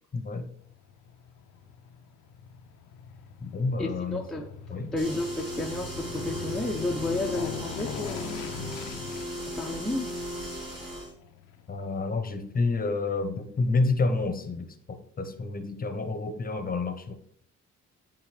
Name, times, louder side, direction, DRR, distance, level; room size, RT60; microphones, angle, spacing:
voice 1, 0.1-0.5 3.4-4.2 4.7-4.9 11.7-17.1, left 3 dB, 30° left, 0.8 m, -29 dB
Aircraft, 0.6-13.1 13.5-13.6, left 9 dB, 85° left, 0.5 m, -42 dB
voice 2, 3.8-4.5 4.9-8.8 9.5-10.2, left 2 dB, ahead, 0.6 m, -32 dB
sound 1, 4.9-11.1, equal, 15° right, 2.8 m, -37 dB
9.3 x 3.7 x 3.3 m
cardioid pair, 90°, 30 cm